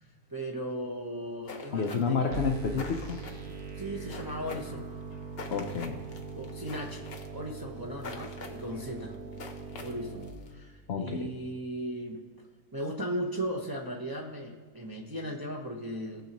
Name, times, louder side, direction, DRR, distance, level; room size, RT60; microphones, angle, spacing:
voice 1, 0.3-2.3 3.8-4.9 6.3-7.1 7.3-9.1 9.8-12.2 12.7-16.2, equal, 20° right, -1 dB, 0.7 m, -37 dB
sound 1, 1.5-10.5, left 4 dB, 45° left, 0.9 m, -46 dB
voice 2, 1.7-3.2 5.5-6.0 10.9-11.3, left 5 dB, 70° left, 3 dB, 0.6 m, -30 dB
sound 2, 2.3-10.3, right 4 dB, 60° right, 1.5 m, -41 dB
18.0 x 6.7 x 3.0 m, 1.6 s
omnidirectional pair, 1.9 m